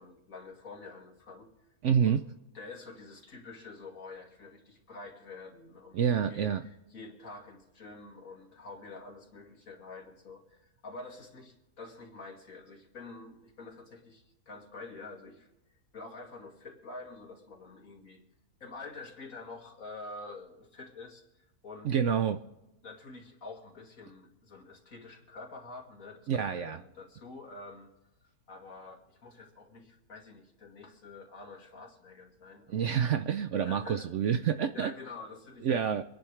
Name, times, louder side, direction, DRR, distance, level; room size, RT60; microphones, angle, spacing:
voice 1, 0.0-1.5 2.1-2.2 2.5-6.0 6.3-15.5 15.9-18.2 18.6-21.9 22.8-27.9 28.5-33.0 33.5-34.1 34.7-36.0, left 3 dB, 60° left, 1 dB, 2.7 m, -47 dB
voice 2, 1.8-2.2 5.9-6.7 21.8-22.4 26.3-26.8 32.7-34.9 35.6-36.0, right 8 dB, 65° right, 9 dB, 0.8 m, -28 dB
26.0 x 10.5 x 3.3 m, 0.98 s
omnidirectional pair, 1.6 m